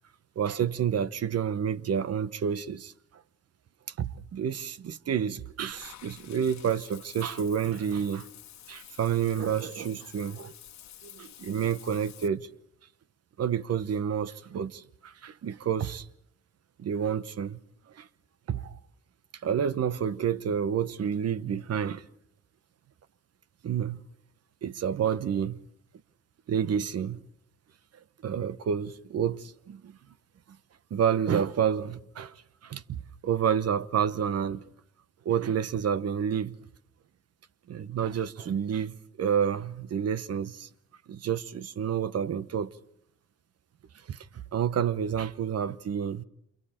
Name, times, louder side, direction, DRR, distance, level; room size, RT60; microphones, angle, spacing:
voice 1, 0.4-2.9 4.0-8.3 8.7-10.5 11.0-12.5 13.4-16.1 16.8-17.6 17.9-18.1 18.5-18.8 19.4-22.0 23.6-24.0 24.6-25.6 26.5-27.2 28.2-30.0 30.9-34.6 35.2-36.6 37.7-40.7 41.1-42.7 44.1-44.3 44.5-46.2, right 8 dB, 55° right, 1.0 m, -29 dB
Water / Bathtub (filling or washing), 5.7-12.3, left 11 dB, 65° left, 1.3 m, -50 dB
28.5 x 28.0 x 4.4 m
cardioid pair, 90°, 30 cm